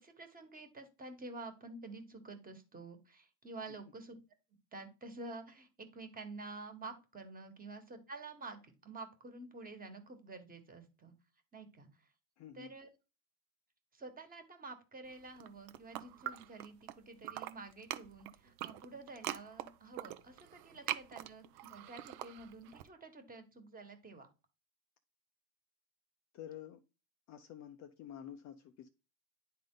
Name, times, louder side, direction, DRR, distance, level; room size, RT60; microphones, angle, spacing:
voice 1, 0.0-4.1 4.7-11.1 11.5-11.9 12.5-12.9 13.9-24.3, right 3 dB, 15° right, 1.4 m, -49 dB
voice 2, 12.4-12.7 26.3-26.8 27.3-28.9, left 10 dB, 35° left, 0.5 m, -49 dB
sound 1, 15.3-17.0 17.2-22.8, right 14 dB, 50° right, 0.7 m, -43 dB
10.0 x 3.7 x 3.8 m
supercardioid pair, 115°, 48 cm